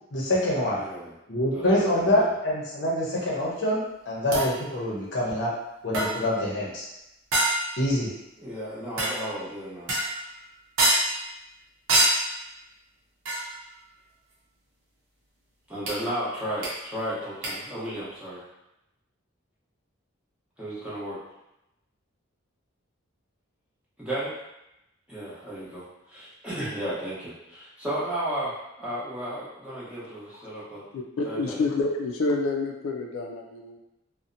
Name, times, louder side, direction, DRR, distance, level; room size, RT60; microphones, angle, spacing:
voice 1, 0.1-0.8 1.3-3.8 4.1-5.5 5.8-6.9 7.8-8.1, left 1 dB, 60° left, -5 dB, 0.7 m, -25 dB
voice 2, 0.6-1.1 1.5-2.3 8.4-9.9 15.7-18.4 20.6-21.2 24.0-24.3 25.1-30.8 31.2-31.6, right 1 dB, 5° right, -11 dB, 0.8 m, -34 dB
sound 1, 4.3-4.6 5.9-6.4 7.3-7.8 9.0-9.3 9.9-10.3 10.8-11.2 11.9-12.3 13.2-13.6 15.9-16.0 16.6-16.7 17.4-17.5, right 1 dB, 85° right, 0.7 m, -25 dB
voice 3, 30.9-33.8, left 3 dB, 85° left, 1 dB, 0.3 m, -28 dB
2.7 x 2.0 x 2.5 m, 0.89 s
head